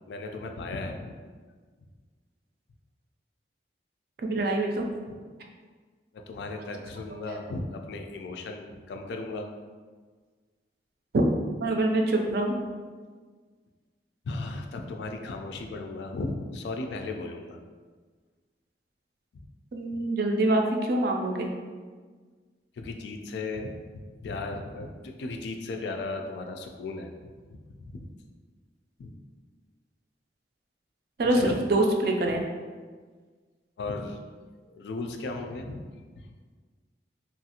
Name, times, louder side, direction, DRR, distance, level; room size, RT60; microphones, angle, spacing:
voice 1, 0.1-1.2 5.1-5.2 6.1-9.5 14.2-17.6 19.3-19.5 22.8-23.8 24.2-27.2 27.5-28.1 29.0-29.1 31.3-31.6 33.8-34.2 34.7-35.8 36.1-36.3, left 3 dB, 70° left, 4 dB, 0.3 m, -36 dB
voice 2, 4.2-4.8 11.1-11.2 11.6-12.5 19.7-21.5 31.2-32.4, right 2 dB, 55° right, 2 dB, 0.3 m, -25 dB
3.0 x 2.4 x 2.8 m, 1.5 s
head